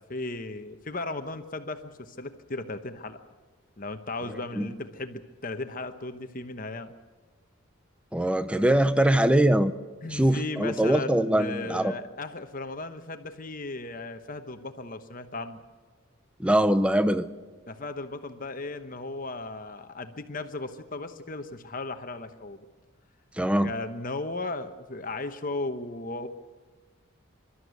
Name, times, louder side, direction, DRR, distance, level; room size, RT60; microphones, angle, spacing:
voice 1, 0.0-3.2 3.8-6.9 10.0-15.6 17.7-22.6 23.6-26.3, left 2 dB, 40° left, 8 dB, 1.0 m, -36 dB
voice 2, 8.1-9.7 10.1-11.9 16.4-17.2 23.4-23.7, right 1 dB, 5° right, 12 dB, 0.6 m, -22 dB
25.5 x 13.0 x 8.2 m, 1.4 s
head